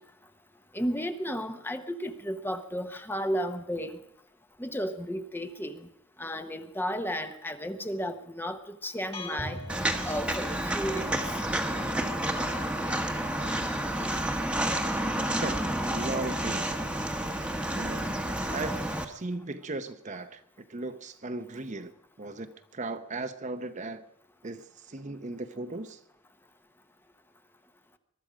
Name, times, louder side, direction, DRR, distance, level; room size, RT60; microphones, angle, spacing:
voice 1, 0.7-4.0 4.6-5.9 6.2-9.6 10.0-11.2, equal, 10° left, 8 dB, 0.9 m, -33 dB
sound 1, 9.1-11.1, left 1 dB, 30° left, 2.1 m, -40 dB
Walk footsteps, 9.7-19.0, right 1 dB, 5° right, 1.2 m, -30 dB
voice 2, 15.4-16.8 17.7-18.2 18.5-21.9 22.2-24.0 24.4-26.0, right 2 dB, 35° right, 9 dB, 0.8 m, -37 dB
22.0 x 12.0 x 5.0 m, 0.78 s
head